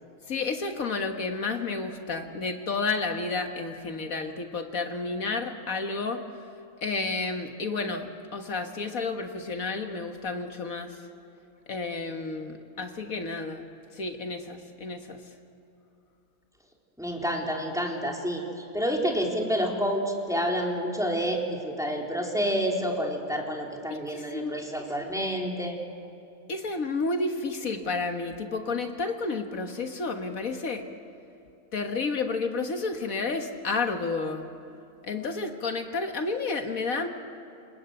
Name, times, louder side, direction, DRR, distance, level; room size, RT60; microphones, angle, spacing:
voice 1, 0.3-6.2 6.8-11.0 11.7-15.2 23.9-24.5 26.5-30.9 31.7-34.5 35.0-37.1, left 3 dB, 70° left, 5 dB, 1.9 m, -31 dB
voice 2, 17.0-18.4 18.7-25.8, equal, ahead, 0 dB, 3.6 m, -28 dB
27.5 x 27.5 x 7.9 m, 2.8 s
omnidirectional pair, 1.5 m